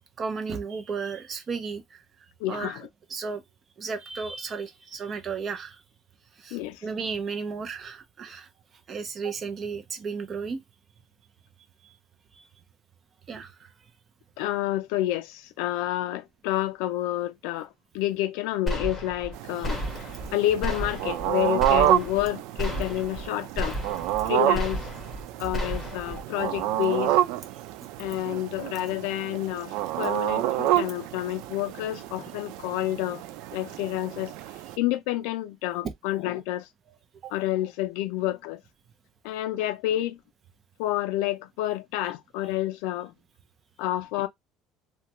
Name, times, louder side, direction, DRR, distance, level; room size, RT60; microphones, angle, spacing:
voice 1, 0.2-1.8 2.5-3.4 3.8-5.8 6.4-8.5 8.9-10.6 12.3-12.5 13.3-13.5 37.2-37.3, right 5 dB, 30° right, 0.6 m, -34 dB
voice 2, 2.4-2.9 6.5-6.8 14.4-17.7 17.9-19.8 20.3-23.8 24.3-24.8 25.4-27.2 28.0-33.2 33.5-34.3 34.8-36.6 37.3-38.6 39.2-40.2 40.8-43.1 43.8-44.3, left 14 dB, 85° left, 0.4 m, -29 dB
sound 1, 18.7-19.3 19.6-20.3 20.6-21.3 21.6-22.3 22.6-23.3 23.6-24.3 24.5-25.2 25.5-26.2, equal, 5° left, 1.3 m, -32 dB
sound 2, 19.3-34.8, right 14 dB, 75° right, 0.3 m, -29 dB
3.2 x 2.2 x 2.9 m
cardioid pair, 150°, 0 cm